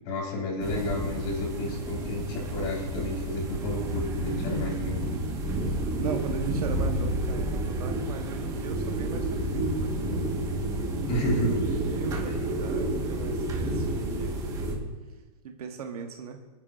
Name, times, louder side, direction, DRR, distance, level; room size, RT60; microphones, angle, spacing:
voice 1, 0.0-5.0 11.1-11.7 12.3-12.4, left 1 dB, 40° left, -2 dB, 4.9 m, -31 dB
sound 1, 0.6-14.7, right 1 dB, 15° right, 1.7 m, -30 dB
voice 2, 5.9-10.3 11.4-14.4 15.4-16.4, right 6 dB, 70° right, 3 dB, 1.3 m, -38 dB
25.0 x 9.7 x 2.7 m, 1.2 s
hypercardioid pair, 150°, 20 cm